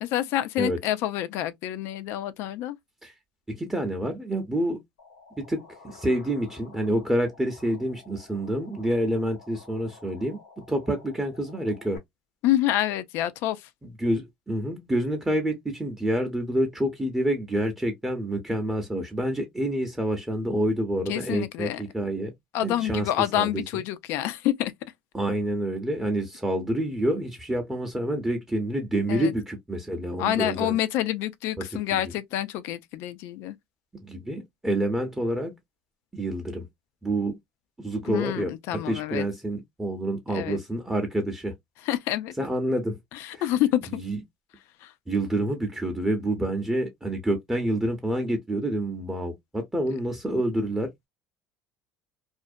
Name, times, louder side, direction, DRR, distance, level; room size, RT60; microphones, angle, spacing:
voice 1, 0.0-2.8 12.4-13.7 21.1-21.8 22.5-24.7 29.1-29.3 30.2-33.6 38.1-39.3 40.3-40.6 41.8-42.3 43.1-44.0 44.8-44.9, left 13 dB, 65° left, 0.4 m, -27 dB
voice 2, 3.5-4.8 5.4-10.4 10.7-12.0 13.8-22.3 22.6-23.6 25.1-30.7 31.6-31.7 34.0-35.5 36.1-36.7 37.0-37.4 37.8-41.5 42.4-43.0 43.3-43.4 44.0-44.2 45.1-50.9, right 1 dB, 10° right, 0.7 m, -28 dB
sound 1, 5.0-12.0, left 4 dB, 85° left, 0.9 m, -51 dB
2.5 x 2.0 x 2.4 m
hypercardioid pair, 80°, 4 cm